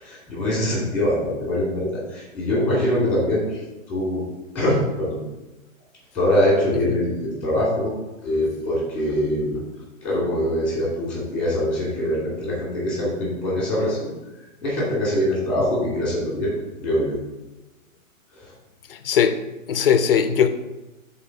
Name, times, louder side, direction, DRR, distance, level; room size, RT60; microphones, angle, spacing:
voice 1, 0.0-4.3 4.5-5.2 6.1-7.9 8.2-9.6 10.0-14.1 14.6-16.5 16.8-17.2 18.3-18.5, left 1 dB, 5° left, -5 dB, 2.3 m, -23 dB
voice 2, 18.9-19.4 19.7-20.5, left 8 dB, 45° left, 9 dB, 0.5 m, -19 dB
7.6 x 4.0 x 5.2 m, 1.1 s
hypercardioid pair, 165°, 42 cm